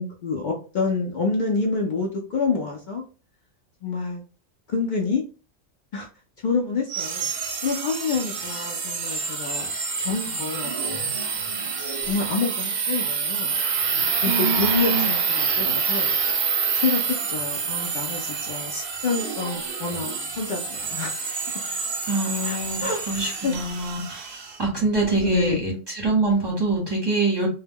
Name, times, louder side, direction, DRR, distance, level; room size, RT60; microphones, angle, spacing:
voice 1, 0.0-3.0 3.8-4.2 4.7-5.2 5.9-6.1 6.4-7.3 7.6-9.7 10.0-11.0 11.2-11.4 12.1-13.5 14.2-16.1 16.7-21.1 22.4-23.5 25.1-25.6, left 4 dB, 70° left, -1 dB, 0.4 m, -28 dB
sound 1, 6.9-24.6, right 5 dB, 60° right, 0.7 m, -27 dB
voice 2, 14.2-15.1 22.1-27.5, right 2 dB, 25° right, -3 dB, 0.7 m, -25 dB
2.2 x 2.1 x 3.4 m, 0.37 s
omnidirectional pair, 1.3 m